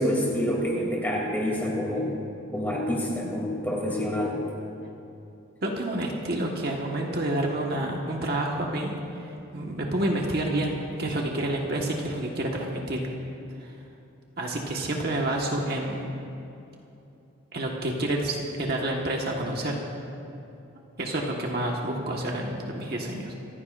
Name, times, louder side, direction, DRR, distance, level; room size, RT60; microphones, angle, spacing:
voice 1, 0.0-2.1 2.5-4.4, equal, 10° left, -3 dB, 2.7 m, -27 dB
voice 2, 5.6-8.9 9.2-13.0 13.6-13.7 14.4-16.1 17.5-19.8 21.0-23.3, right 1 dB, 45° right, -1 dB, 1.4 m, -29 dB
27.0 x 15.5 x 2.5 m, 2.8 s
head